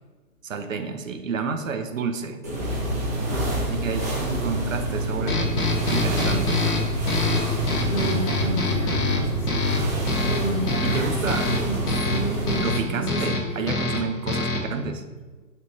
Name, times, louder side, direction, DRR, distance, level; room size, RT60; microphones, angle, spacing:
voice 1, 0.4-2.9 3.5-6.6 10.8-11.5 12.6-15.0, right 5 dB, 55° right, 7 dB, 0.9 m, -30 dB
sound 1, 2.4-12.7, right 1 dB, 10° right, 0.6 m, -27 dB
sound 2, 5.3-14.8, left 3 dB, 70° left, 1.9 m, -26 dB
voice 2, 7.4-9.9 10.2-13.7, equal, 50° left, 0 dB, 1.4 m, -32 dB
7.9 x 5.3 x 2.8 m, 1.3 s
hypercardioid pair, 165°, 48 cm